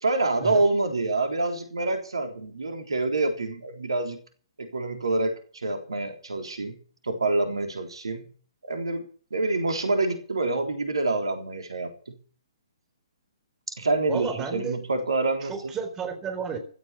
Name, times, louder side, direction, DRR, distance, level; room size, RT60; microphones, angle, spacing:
voice 1, 0.0-4.2 4.6-6.8 7.0-8.2 8.7-9.0 9.3-11.9 13.8-15.7, right 2 dB, 70° right, 3.7 m, -27 dB
voice 2, 14.1-14.8 15.4-16.6, right 6 dB, 15° right, 4.1 m, -32 dB
16.0 x 12.5 x 6.0 m
figure-of-eight pair, 125°, 3 cm